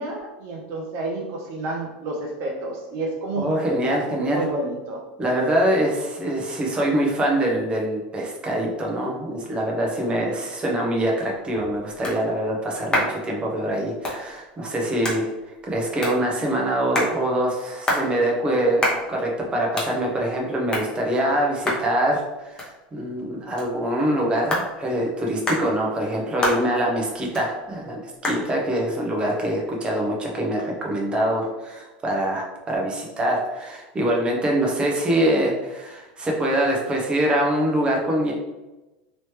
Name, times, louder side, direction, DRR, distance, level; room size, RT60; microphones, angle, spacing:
voice 1, 0.0-5.0, right 2 dB, 50° right, 0 dB, 0.7 m, -30 dB
voice 2, 3.4-4.4 5.2-15.3 15.6-18.8 19.1-38.3, right 1 dB, 20° right, -1 dB, 0.9 m, -24 dB
sound 1, 11.1-30.5, left 1 dB, 15° left, 1.0 m, -32 dB
3.0 x 3.0 x 3.1 m, 1.1 s
supercardioid pair, 120°, 5 cm